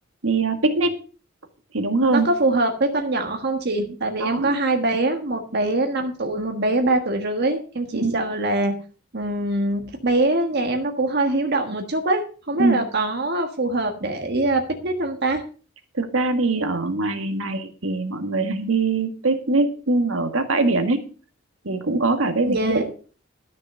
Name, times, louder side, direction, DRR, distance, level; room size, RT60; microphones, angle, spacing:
voice 1, 0.2-1.0 1.7-2.3 4.2-4.5 7.9-8.2 12.6-12.8 16.0-21.0 21.7-22.9, right 3 dB, 70° right, 7 dB, 1.9 m, -22 dB
voice 2, 2.1-8.7 9.1-15.4 22.4-22.8, right 2 dB, 50° right, 4 dB, 1.5 m, -23 dB
13.0 x 6.4 x 6.4 m, 0.38 s
head